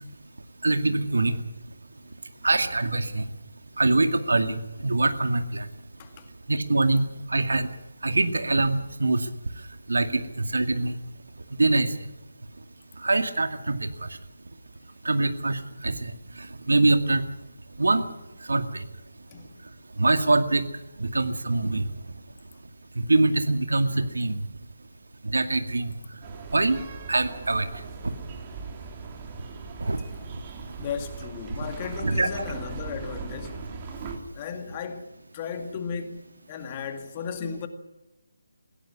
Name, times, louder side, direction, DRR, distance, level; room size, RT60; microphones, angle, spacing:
voice 1, 0.6-1.4 2.4-3.2 3.8-5.7 6.5-7.7 8.0-9.3 9.9-10.9 11.6-11.9 13.0-13.9 15.1-16.1 16.7-17.2 17.8-18.0 18.5-18.7 20.0-20.6 21.0-21.9 23.0-24.4 25.2-25.9 26.5-26.8 27.1-27.7 29.8-30.0 32.0-32.3, right 2 dB, 65° right, 2.1 m, -23 dB
voice 2, 19.3-19.6 30.8-33.7 34.3-37.7, left 6 dB, 25° left, 2.0 m, -35 dB
sound 1, 26.2-34.2, right 5 dB, 25° right, 2.9 m, -39 dB
21.0 x 17.0 x 9.7 m
figure-of-eight pair, 150°, 0 cm